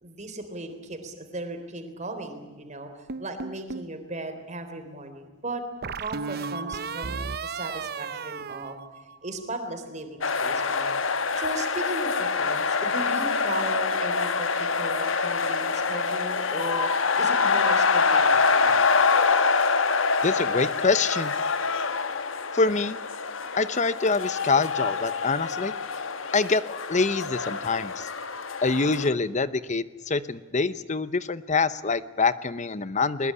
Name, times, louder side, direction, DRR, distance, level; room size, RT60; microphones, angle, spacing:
voice 1, 0.0-2.9 3.2-5.6 6.0-8.8 9.2-10.9 11.4-16.9 17.2-18.8, right 2 dB, 40° right, 7 dB, 3.8 m, -36 dB
sound 1, 3.1-3.9 5.8-9.5, right 5 dB, 55° right, 0.7 m, -34 dB
sound 2, 10.2-29.1, left 4 dB, 90° left, 1.5 m, -25 dB
voice 2, 20.2-21.3 22.5-23.0 23.6-25.7 26.3-28.1 28.6-33.3, left 4 dB, 40° left, 15 dB, 0.8 m, -25 dB
21.0 x 21.0 x 9.9 m, 1.3 s
head